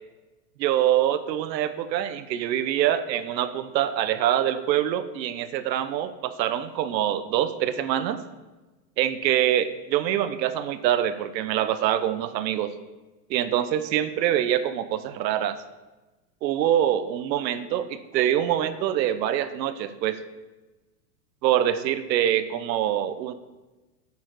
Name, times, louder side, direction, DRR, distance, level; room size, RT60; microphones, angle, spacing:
voice 1, 0.6-8.2 9.0-12.7 13.3-15.6 16.4-20.2 21.4-23.3, right 11 dB, 90° right, 12 dB, 0.7 m, -25 dB
8.2 x 4.7 x 4.5 m, 1.2 s
supercardioid pair, 170°, 49 cm